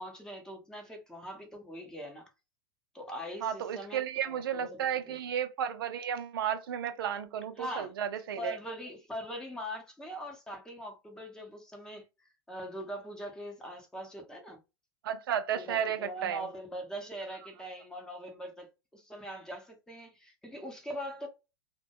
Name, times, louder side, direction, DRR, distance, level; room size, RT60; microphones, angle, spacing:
voice 1, 0.0-2.3 2.9-5.2 7.6-7.9 8.4-12.1 12.5-14.6 15.5-18.7 18.9-21.3, equal, 5° left, 0.7 m, -42 dB
voice 2, 3.4-8.6 15.0-16.4, right 9 dB, 75° right, 0.5 m, -33 dB
2.2 x 2.1 x 2.7 m
hypercardioid pair, 120°, 12 cm